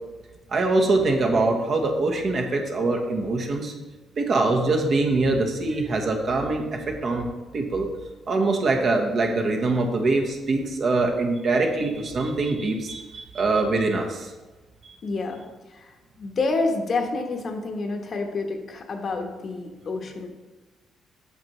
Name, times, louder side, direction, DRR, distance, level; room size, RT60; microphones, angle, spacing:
voice 1, 0.5-3.7 4.2-7.3 7.5-7.9 8.3-14.3 14.8-14.9, right 3 dB, 50° right, 2 dB, 1.2 m, -23 dB
voice 2, 15.0-15.4 15.7-20.3, left 3 dB, 50° left, 3 dB, 1.0 m, -28 dB
8.3 x 5.9 x 3.1 m, 1.2 s
cardioid pair, 90°, 0 cm